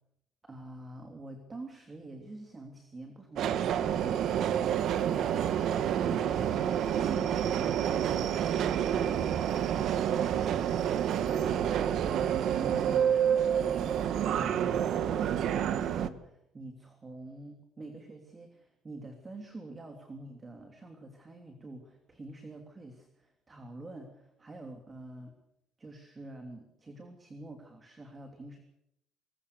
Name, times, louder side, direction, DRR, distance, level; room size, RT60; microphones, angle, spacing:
voice 1, 0.4-4.7 5.7-25.3 25.8-28.6, right 2 dB, 20° right, 4 dB, 3.1 m, -47 dB
Subway metro underground, 3.4-16.1, right 9 dB, 55° right, 1.6 m, -28 dB
25.5 x 22.5 x 6.9 m, 0.78 s
cardioid pair, 150°, 0 cm